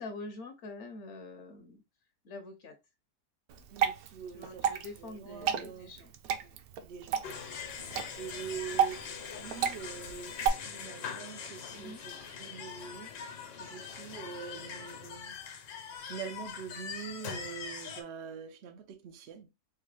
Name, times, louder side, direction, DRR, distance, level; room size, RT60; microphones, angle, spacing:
voice 1, 0.0-1.8 2.2-2.7 4.3-6.1 6.4-6.6 7.8-7.9 11.7-12.0, left 2 dB, 60° left, 0.8 m, -45 dB
Water / Drip, 3.5-10.5, right 8 dB, 70° right, 1.0 m, -33 dB
voice 2, 3.7-4.7 5.0-5.9 6.8-7.9 8.2-13.1 13.6-15.4 16.0-19.5, right 7 dB, 85° right, 0.5 m, -44 dB
sound 1, 7.2-18.0, left 6 dB, 80° left, 1.3 m, -42 dB
4.5 x 2.1 x 3.1 m
omnidirectional pair, 1.8 m